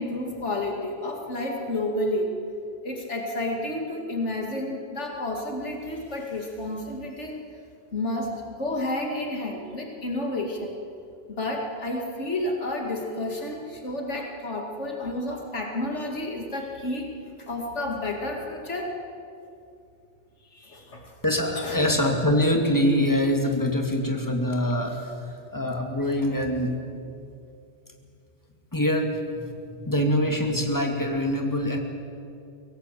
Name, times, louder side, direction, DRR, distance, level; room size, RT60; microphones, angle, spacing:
voice 1, 0.0-2.3 2.8-7.4 7.9-10.8 11.3-17.1 17.4-18.9 20.5-21.1 21.5-21.8, left 1 dB, 85° left, 1 dB, 2.7 m, -30 dB
voice 2, 21.2-26.8 28.7-29.4 29.7-31.8, left 1 dB, 15° left, 2 dB, 2.5 m, -24 dB
23.5 x 18.0 x 8.4 m, 2.6 s
omnidirectional pair, 1.2 m